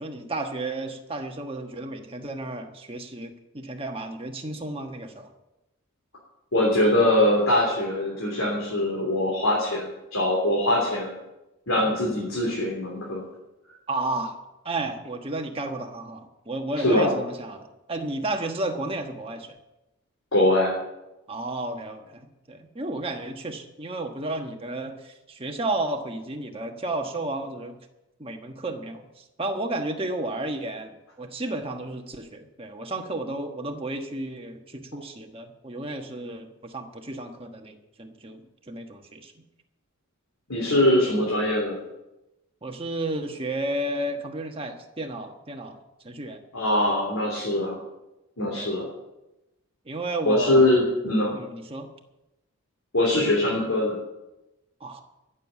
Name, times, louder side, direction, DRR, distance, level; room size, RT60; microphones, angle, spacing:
voice 1, 0.0-5.3 13.9-14.4 14.6-19.6 21.3-27.8 28.2-39.3 42.6-46.4 48.5-48.7 49.8-50.7 51.3-51.9 54.8-55.0, right 2 dB, 25° right, 4 dB, 1.3 m, -32 dB
voice 2, 6.5-11.1 11.7-13.2 16.8-17.1 20.3-20.8 40.5-41.8 46.5-47.8 48.4-48.9 50.2-51.3 52.9-54.0, left 1 dB, 70° left, -3 dB, 3.3 m, -22 dB
14.5 x 7.4 x 8.2 m, 0.96 s
head